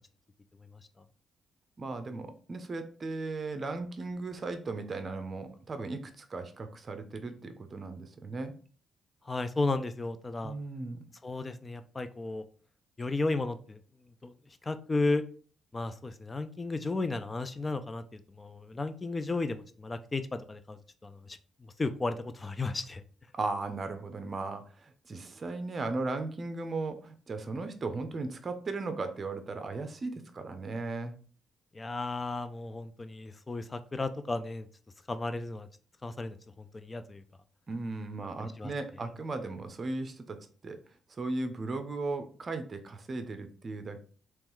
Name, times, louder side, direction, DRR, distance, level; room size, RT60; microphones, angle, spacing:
voice 1, 1.8-8.5 10.4-11.0 23.3-31.1 37.7-40.8 41.2-44.0, right 3 dB, 35° right, 8 dB, 0.7 m, -36 dB
voice 2, 9.2-10.5 11.2-12.4 13.0-13.8 14.2-14.3 14.6-15.2 15.7-21.4 21.8-23.0 31.7-34.7 35.1-35.7 36.0-37.2 38.4-38.7, left 3 dB, 25° left, 10 dB, 0.5 m, -34 dB
3.6 x 3.1 x 4.6 m, 0.42 s
cardioid pair, 90°, 0 cm